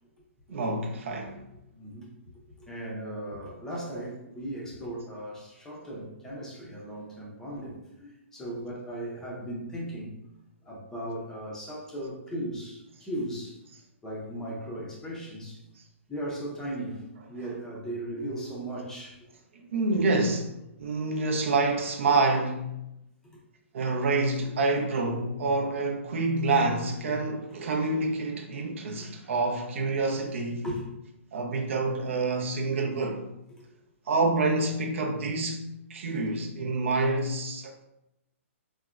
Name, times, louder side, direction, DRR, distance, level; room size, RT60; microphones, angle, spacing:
voice 1, 0.5-1.4 19.5-22.7 23.7-30.7 31.3-33.2 34.1-37.8, right 3 dB, 65° right, 0.5 m, -27 dB
voice 2, 1.7-2.1 2.6-10.1 10.6-13.6 14.0-15.6 16.1-19.3 23.2-23.4 29.0-29.3 30.6-30.8 33.5-33.6, right 1 dB, 5° left, 0.5 m, -37 dB
3.3 x 2.1 x 2.4 m
hypercardioid pair, 150°, 7 cm